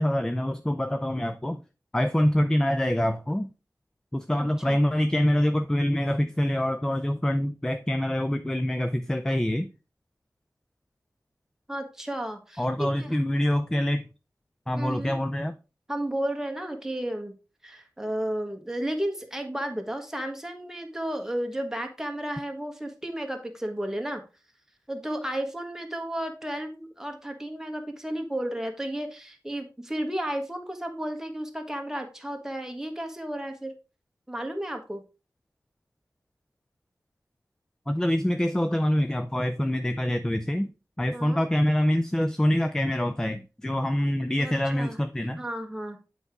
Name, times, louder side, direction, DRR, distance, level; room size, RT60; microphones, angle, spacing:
voice 1, 0.0-1.6 1.9-3.5 4.1-9.7 12.6-14.0 14.7-15.6 37.9-40.7 41.0-45.4, left 1 dB, 10° left, 0.4 m, -25 dB
voice 2, 4.4-4.8 11.7-13.2 14.8-15.2 15.9-17.3 17.6-24.2 24.9-33.7 34.3-35.0 41.1-41.4 44.4-45.0 45.4-46.0, right 1 dB, 10° right, 1.4 m, -33 dB
7.7 x 4.7 x 3.7 m
wide cardioid pair, 70°, 7 cm